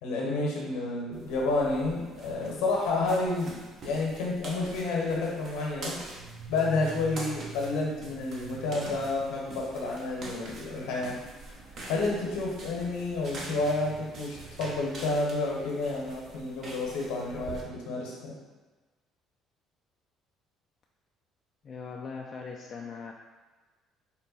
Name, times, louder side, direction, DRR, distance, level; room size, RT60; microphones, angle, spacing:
voice 1, 0.0-6.0 6.5-11.2 11.9-18.3, left 3 dB, 75° left, -2 dB, 1.0 m, -30 dB
sound 1, 1.1-17.6, right 2 dB, 55° right, 0.9 m, -45 dB
sound 2, 6.0-10.1, right 4 dB, 80° right, 0.6 m, -45 dB
voice 2, 21.6-23.1, left 5 dB, 45° left, 0 dB, 0.4 m, -40 dB
4.5 x 2.2 x 4.1 m, 1.3 s
hypercardioid pair, 60°, 0 cm